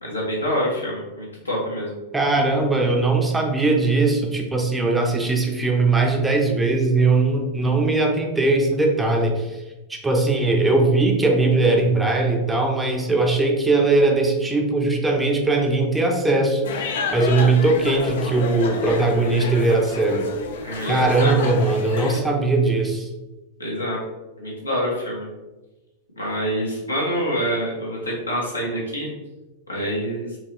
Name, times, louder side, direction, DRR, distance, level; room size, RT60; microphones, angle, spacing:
voice 1, 0.0-1.9 20.6-21.4 23.6-24.0 24.4-25.3 26.2-29.1 29.7-30.4, equal, 80° left, -4 dB, 1.2 m, -26 dB
voice 2, 2.1-9.6 9.9-20.3 20.9-23.1, right 3 dB, 10° right, 2 dB, 0.6 m, -20 dB
sound 1, 16.6-22.2, left 4 dB, 60° left, 0.5 m, -30 dB
4.4 x 3.0 x 3.0 m, 1.1 s
figure-of-eight pair, 90°, 0 cm